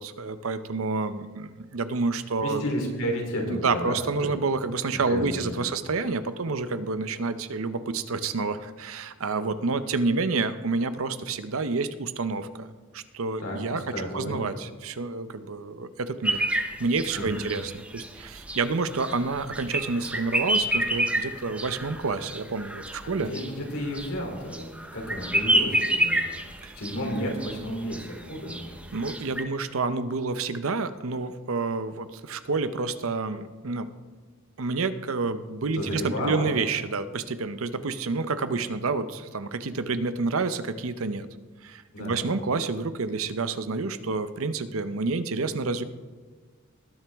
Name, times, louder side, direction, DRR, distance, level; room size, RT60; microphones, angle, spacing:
voice 1, 0.0-2.6 3.5-13.8 14.1-16.4 16.8-23.3 26.6-26.7 28.9-33.9 34.6-41.3 41.6-45.8, right 3 dB, 75° right, 12 dB, 0.7 m, -29 dB
voice 2, 2.4-3.9 4.2-4.3 5.1-5.6 13.4-14.4 17.1-17.5 23.0-26.2 26.7-28.6 35.7-36.5 41.9-42.3, equal, 75° left, 0 dB, 3.2 m, -32 dB
sound 1, 16.2-29.4, right 1 dB, 5° right, 0.7 m, -29 dB
19.5 x 9.1 x 3.5 m, 1.5 s
head